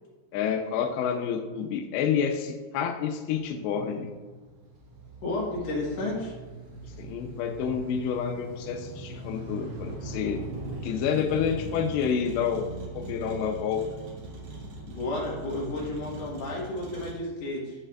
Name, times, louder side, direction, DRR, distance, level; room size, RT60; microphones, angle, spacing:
voice 1, 0.3-4.1 7.0-10.4 10.8-12.7 12.9-13.8, left 7 dB, 90° left, 4 dB, 2.8 m, -29 dB
Motor vehicle (road), 3.1-17.1, right 2 dB, 75° right, 1.6 m, -40 dB
voice 2, 5.2-6.3 14.9-17.8, left 2 dB, 60° left, -4 dB, 1.8 m, -32 dB
10.5 x 5.6 x 2.4 m, 1.3 s
omnidirectional pair, 5.0 m